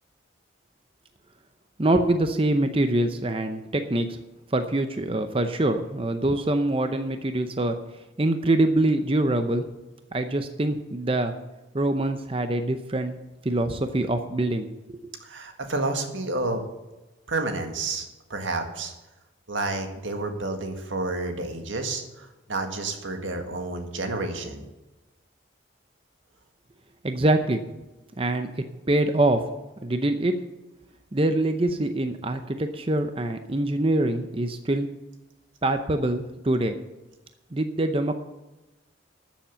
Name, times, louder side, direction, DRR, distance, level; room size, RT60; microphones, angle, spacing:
voice 1, 1.8-4.2 4.5-7.8 8.2-9.6 10.1-11.3 11.7-13.2 13.4-15.0 27.0-27.6 28.2-28.5 28.9-29.4 29.8-30.3 31.1-34.9 35.6-36.8 37.5-38.2, right 1 dB, 30° right, 8 dB, 0.6 m, -24 dB
voice 2, 15.2-16.6 17.3-18.9 19.5-24.7, right 2 dB, 85° right, 5 dB, 1.8 m, -30 dB
13.0 x 7.2 x 7.0 m, 1.0 s
head